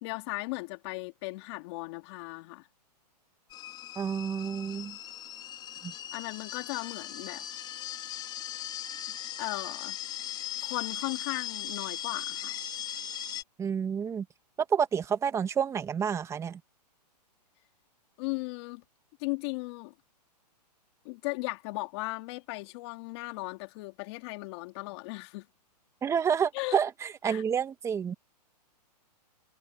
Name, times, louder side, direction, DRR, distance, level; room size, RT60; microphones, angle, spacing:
voice 1, 0.0-2.6 6.1-7.4 9.4-10.0 10.6-12.6 18.2-18.8 19.2-19.9 21.0-25.5 26.5-26.8 27.3-27.4, left 25 dB, 40° left, 2.8 m, -36 dB
sound 1, 3.5-13.4, left 10 dB, 20° left, 4.2 m, -39 dB
voice 2, 3.9-5.0 5.8-5.9 13.6-14.2 14.7-16.6 26.0-28.1, right 7 dB, 15° right, 1.7 m, -29 dB
hypercardioid pair, 145°, 21 cm